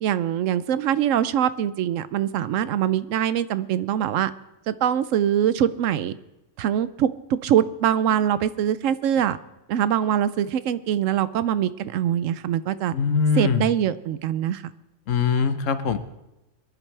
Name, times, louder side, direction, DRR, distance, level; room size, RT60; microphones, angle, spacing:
voice 1, 0.0-4.3 4.7-6.2 6.6-9.4 9.7-12.9 13.4-14.7, right 10 dB, 85° right, 15 dB, 1.0 m, -23 dB
voice 2, 12.9-13.7 15.1-16.0, left 5 dB, 85° left, 11 dB, 1.2 m, -22 dB
22.5 x 10.5 x 3.3 m, 0.95 s
omnidirectional pair, 1.3 m